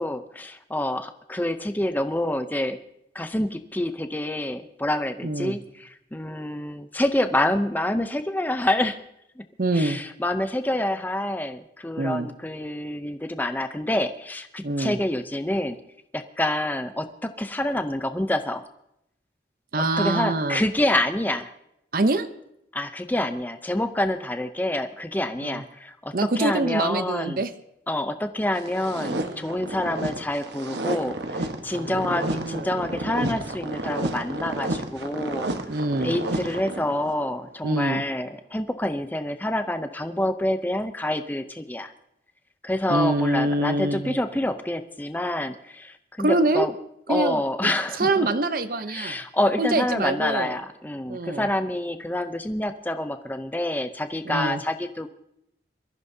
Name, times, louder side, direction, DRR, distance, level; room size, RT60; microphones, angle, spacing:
voice 1, 0.0-2.8 3.1-9.0 9.4-9.5 9.7-15.8 16.1-18.7 19.8-21.5 22.7-27.4 27.9-35.7 36.0-41.9 42.6-46.7 47.1-48.3 48.9-55.1, left 1 dB, 10° left, 9 dB, 0.5 m, -27 dB
voice 2, 5.2-5.6 9.6-10.0 12.0-12.3 14.6-15.0 19.7-20.6 21.9-22.3 25.4-25.6 26.1-27.5 29.2-29.5 31.7-32.7 35.7-36.1 37.6-38.0 42.9-44.2 46.2-46.7 47.1-47.4 48.0-49.2 49.6-50.5 51.1-51.5 54.3-54.6, right 2 dB, 50° right, 11 dB, 0.7 m, -25 dB
sound 1, 28.6-37.2, right 2 dB, 80° right, 1.2 m, -31 dB
23.0 x 14.5 x 2.7 m, 0.79 s
head